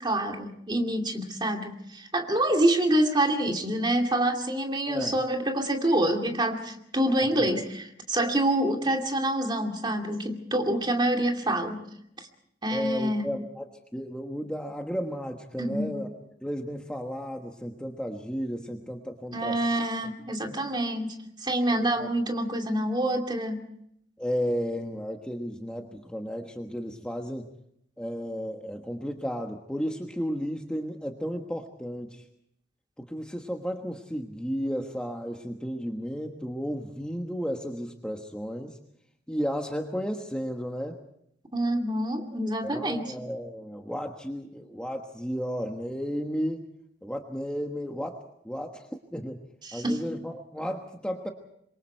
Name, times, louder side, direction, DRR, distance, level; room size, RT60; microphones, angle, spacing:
voice 1, 0.0-11.8 12.6-13.3 15.6-15.9 19.3-23.6 41.5-43.1 49.7-50.1, right 1 dB, 25° right, 3 dB, 2.5 m, -27 dB
voice 2, 4.8-5.2 7.4-7.5 12.7-16.1 16.4-19.6 20.4-20.5 22.0-22.1 24.2-27.5 28.0-32.3 33.0-38.8 39.3-41.0 42.6-46.7 47.0-49.4 49.7-51.3, equal, 5° left, 2 dB, 1.3 m, -33 dB
27.0 x 23.0 x 4.6 m, 0.74 s
head